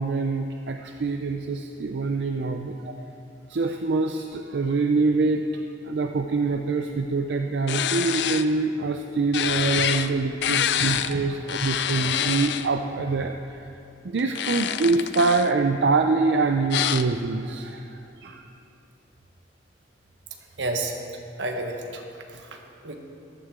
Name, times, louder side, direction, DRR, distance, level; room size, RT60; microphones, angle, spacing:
voice 1, 0.0-2.8 3.5-5.5 5.8-13.6 14.0-18.4, right 3 dB, 70° right, 5 dB, 0.5 m, -25 dB
sound 1, 7.7-8.4 9.3-10.1 10.4-11.1 11.5-12.7 14.2-15.5 16.7-17.0, left 9 dB, 65° left, 0.4 m, -26 dB
voice 2, 10.8-11.3 20.6-21.0 21.4-22.0 22.3-22.6 22.8-23.0, right 2 dB, 85° right, 3 dB, 1.3 m, -31 dB
14.5 x 12.0 x 3.7 m, 2.7 s
head